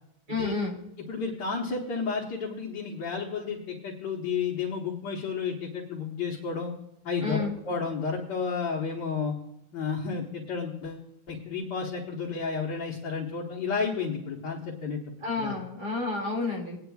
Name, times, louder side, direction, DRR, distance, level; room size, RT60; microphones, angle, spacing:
voice 1, 0.3-0.8 7.2-7.5 15.2-16.8, left 3 dB, 50° right, -1 dB, 2.9 m, -30 dB
voice 2, 1.1-6.7 7.0-9.3 9.7-15.0 15.4-15.5, left 5 dB, 60° left, -2 dB, 1.7 m, -32 dB
19.0 x 9.8 x 2.3 m, 0.85 s
omnidirectional pair, 2.2 m